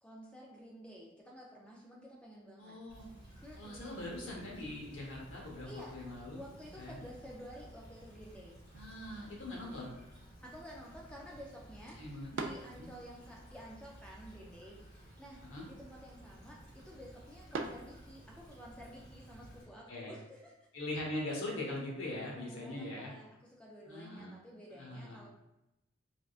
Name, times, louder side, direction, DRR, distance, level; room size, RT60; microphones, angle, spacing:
voice 1, 0.0-2.8 3.4-4.1 5.7-6.0 6.3-8.6 10.4-20.5 22.3-25.3, equal, 5° left, -3 dB, 0.4 m, -51 dB
voice 2, 2.6-3.1 3.6-6.4 6.8-7.0 8.8-9.9 12.0-12.3 12.7-12.9 15.4-15.7 19.9-20.1 20.7-23.1 23.9-24.3 24.8-25.2, left 1 dB, 80° left, -2 dB, 0.8 m, -41 dB
Stream / Trickle dribble, 2.9-19.6, right 1 dB, 30° left, 1.4 m, -55 dB
sound 1, 8.6-18.6, right 3 dB, 70° right, 0.3 m, -49 dB
3.3 x 2.4 x 2.4 m, 0.90 s
head